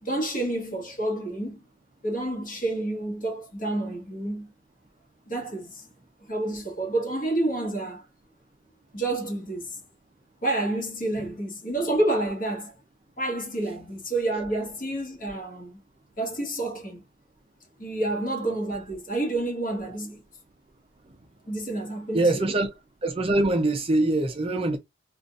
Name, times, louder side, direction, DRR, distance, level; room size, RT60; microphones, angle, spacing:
voice 1, 0.0-1.7 2.0-4.5 5.3-5.8 6.2-8.1 8.9-9.8 10.4-12.7 13.2-15.8 16.2-17.0 17.8-20.2 21.5-22.5, right 2 dB, 45° left, 1.4 m, -29 dB
voice 2, 22.1-22.7 23.0-24.8, right 2 dB, 30° right, 0.5 m, -23 dB
3.8 x 2.4 x 2.4 m
head